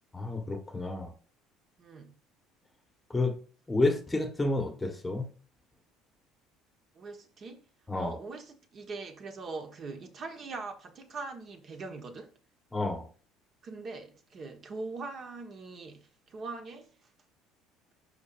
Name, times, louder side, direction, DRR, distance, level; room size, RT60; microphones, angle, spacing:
voice 1, 0.1-1.1 3.1-3.4 3.7-5.3 7.9-8.1 12.7-13.1, left 2 dB, 10° left, 1.2 m, -30 dB
voice 2, 1.8-2.1 6.9-7.6 7.9-12.3 13.6-16.9, right 3 dB, 35° right, 1.2 m, -41 dB
11.5 x 4.0 x 2.5 m
cardioid pair, 140°, 0 cm